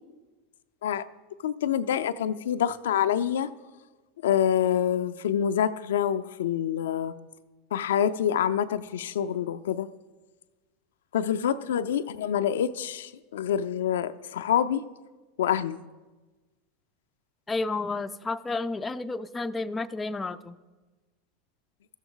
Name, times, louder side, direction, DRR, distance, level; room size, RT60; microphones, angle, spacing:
voice 1, 1.4-3.5 4.2-7.2 7.7-9.9 11.1-14.8 15.4-15.8, left 9 dB, 85° left, 11 dB, 0.4 m, -26 dB
voice 2, 17.5-20.6, left 3 dB, 15° left, 10 dB, 0.4 m, -31 dB
14.5 x 7.1 x 3.8 m, 1.2 s
hypercardioid pair, 110°, 0 cm